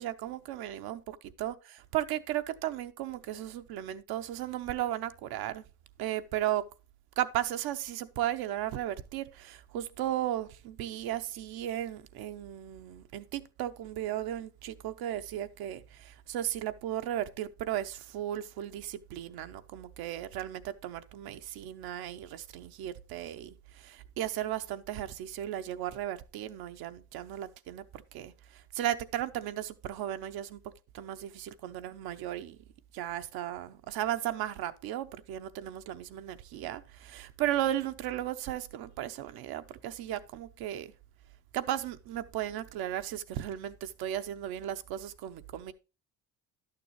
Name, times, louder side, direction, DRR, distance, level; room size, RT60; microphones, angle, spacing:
voice 1, 0.0-5.6 6.0-6.6 7.2-30.6 30.9-32.6 32.9-40.9 41.5-45.7, right 12 dB, 75° right, 0.8 m, -35 dB
11.0 x 6.8 x 3.1 m
supercardioid pair, 75°, 37 cm